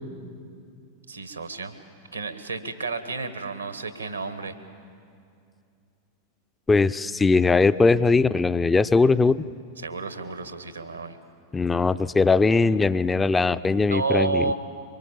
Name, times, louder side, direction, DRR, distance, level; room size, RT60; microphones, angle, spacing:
voice 1, 1.1-1.7 2.1-4.5 9.8-11.2 13.9-14.5, right 4 dB, 80° right, 10 dB, 1.4 m, -30 dB
voice 2, 6.7-9.4 11.5-14.4, left 4 dB, 15° left, 16 dB, 0.5 m, -20 dB
24.0 x 23.0 x 7.4 m, 2.4 s
figure-of-eight pair, 90°, 0 cm